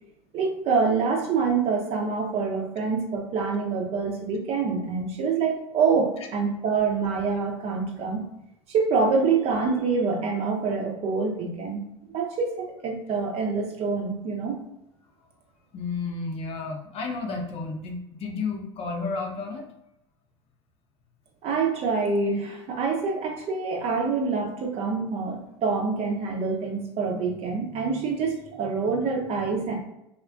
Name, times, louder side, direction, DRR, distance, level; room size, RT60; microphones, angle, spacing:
voice 1, 0.3-8.2 8.7-11.8 12.1-14.6 21.4-29.8, right 4 dB, 45° right, 2 dB, 0.7 m, -26 dB
voice 2, 15.7-19.6, left 4 dB, 40° left, 2 dB, 0.7 m, -32 dB
3.5 x 2.3 x 2.4 m, 0.85 s
figure-of-eight pair, 70°, 15 cm